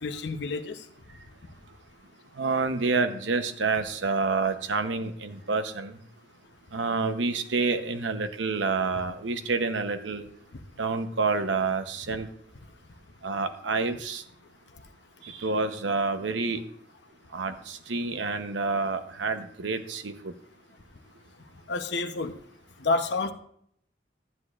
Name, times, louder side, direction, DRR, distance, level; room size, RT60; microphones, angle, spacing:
voice 1, 0.0-0.8 21.7-22.3 22.8-23.3, left 3 dB, 70° left, 7 dB, 0.8 m, -29 dB
voice 2, 2.3-6.0 6.7-10.3 10.8-12.3 13.2-14.2 15.2-16.6 17.3-20.3, right 4 dB, 90° right, 8 dB, 0.9 m, -28 dB
12.5 x 9.8 x 2.5 m, 0.67 s
head